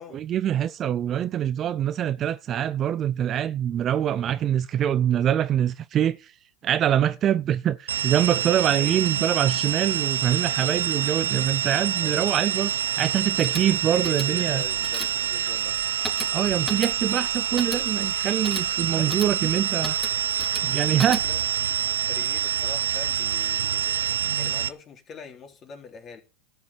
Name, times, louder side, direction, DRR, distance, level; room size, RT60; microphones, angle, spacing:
voice 1, 0.1-6.3 6.6-12.7 13.0-14.6 16.3-20.0 20.6-21.2, right 10 dB, 35° right, 0.5 m, -24 dB
sound 1, 7.9-24.7, right 9 dB, 90° right, 0.7 m, -26 dB
voice 2, 8.7-9.0 11.8-12.4 13.6-15.8 18.9-19.2 19.5-19.7 20.8-21.4 21.8-24.0 24.4-26.2, left 5 dB, 30° left, 3.7 m, -43 dB
sound 2, 13.2-21.6, equal, ahead, 3.5 m, -39 dB
Wind instrument woodwind instrument, 15.4-20.0, right 4 dB, 15° right, 3.1 m, -47 dB
13.0 x 6.9 x 8.8 m
hypercardioid pair, 110°, 0 cm